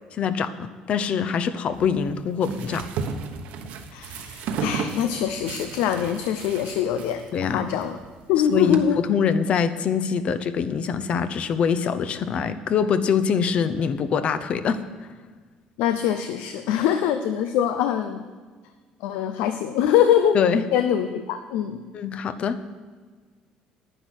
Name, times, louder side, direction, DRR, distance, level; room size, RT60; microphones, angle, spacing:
voice 1, 0.1-2.9 7.3-7.7 8.5-14.8 20.3-20.6 21.9-22.6, left 6 dB, 50° left, 11 dB, 0.8 m, -24 dB
sound 1, 1.7-8.8, right 6 dB, 75° right, 1.1 m, -34 dB
voice 2, 3.9-8.0 8.3-9.0 15.8-18.2 19.0-20.4 20.7-21.8, left 9 dB, 90° left, 8 dB, 0.6 m, -23 dB
10.0 x 9.9 x 6.3 m, 1.5 s
cardioid pair, 120°, 3 cm